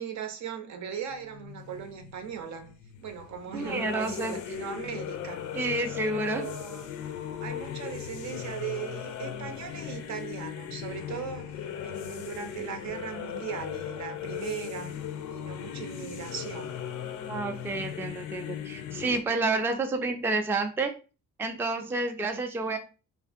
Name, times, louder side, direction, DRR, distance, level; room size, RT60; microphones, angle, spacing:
voice 1, 0.0-2.7 3.0-6.9 7.4-15.0 15.3-16.7, right 7 dB, 65° right, 0.6 m, -38 dB
sound 1, 1.1-19.2, left 9 dB, 80° left, 0.5 m, -38 dB
voice 2, 3.5-4.3 5.5-6.4 17.3-20.9 21.4-22.8, right 3 dB, 10° right, 0.3 m, -29 dB
2.5 x 2.4 x 2.5 m
cardioid pair, 90°, 30 cm